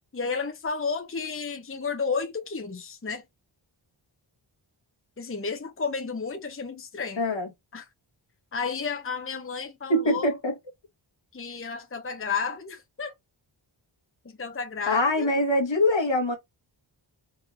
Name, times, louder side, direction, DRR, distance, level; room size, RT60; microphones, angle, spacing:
voice 1, 0.1-3.3 5.2-7.2 7.7-7.9 8.5-10.3 11.3-13.1 14.2-15.3, left 5 dB, 25° left, 0.8 m, -32 dB
voice 2, 7.2-7.5 9.9-10.5 14.9-16.4, left 1 dB, 65° left, 1.7 m, -23 dB
4.7 x 2.8 x 4.0 m
cardioid pair, 50°, 48 cm